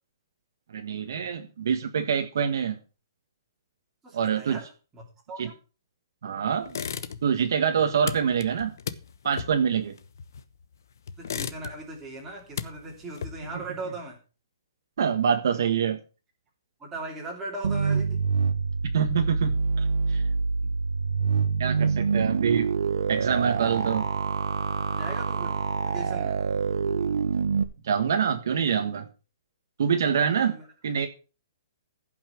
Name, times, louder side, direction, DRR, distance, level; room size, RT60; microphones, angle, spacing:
voice 1, 0.7-2.8 4.1-4.6 5.4-5.5 6.2-6.8 7.2-8.7 9.2-9.9 15.0-16.0 18.8-20.2 21.6-22.7 23.1-24.1 27.8-29.1 29.8-30.6 30.8-31.1, right 7 dB, 55° right, 5 dB, 1.5 m, -25 dB
voice 2, 4.0-4.7 4.9-5.5 11.2-14.2 15.5-15.6 16.8-18.2 20.6-20.7 22.4-22.5 24.9-26.4 30.3-30.7, right 2 dB, 10° right, -2 dB, 3.1 m, -39 dB
sound 1, 6.7-7.5 7.7-10.6 11.1-12.0 12.3-13.6, left 7 dB, 55° left, 1.0 m, -36 dB
sound 2, 17.6-27.6, right 5 dB, 90° right, 1.5 m, -26 dB
16.0 x 6.0 x 5.9 m, 0.33 s
hypercardioid pair, 175°, 2 cm